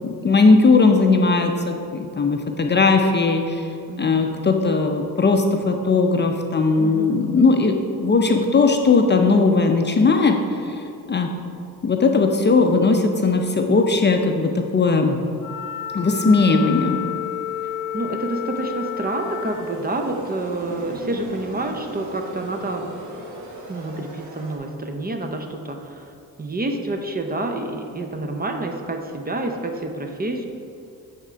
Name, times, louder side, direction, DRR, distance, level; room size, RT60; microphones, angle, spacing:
voice 1, 0.0-3.7 4.0-10.4 10.6-10.8 11.1-11.3 11.8-15.2 15.9-17.0, left 3 dB, 30° left, 4 dB, 0.5 m, -18 dB
voice 2, 3.9-4.2 6.8-7.2 12.1-12.4 17.9-22.9 23.7-26.1 26.4-30.5, right 2 dB, 25° right, 4 dB, 0.6 m, -28 dB
Wind instrument woodwind instrument, 15.4-19.7, left 10 dB, 50° left, 1.0 m, -30 dB
sound 1, 18.2-24.6, right 1 dB, 50° right, 1.3 m, -39 dB
7.9 x 3.6 x 5.0 m, 2.5 s
cardioid pair, 80°, 38 cm